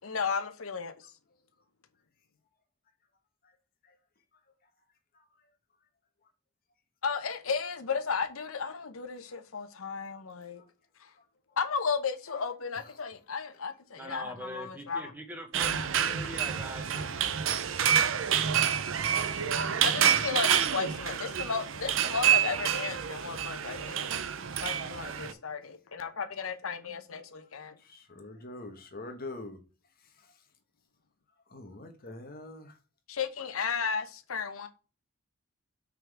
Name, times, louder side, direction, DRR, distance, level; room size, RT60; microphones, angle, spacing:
voice 1, 0.0-0.9 7.0-10.6 11.0-11.1 11.6-15.1 19.8-24.0 24.6-27.7 33.1-34.7, left 5 dB, 75° left, 0.8 m, -34 dB
voice 2, 14.0-17.1, equal, 10° right, 0.8 m, -43 dB
sound 1, 15.5-25.3, right 8 dB, 65° right, 0.6 m, -28 dB
voice 3, 16.9-17.4 23.9-24.1 25.1-25.3 27.8-29.6 31.5-32.8, left 2 dB, 40° left, 1.2 m, -45 dB
5.9 x 3.8 x 4.7 m
head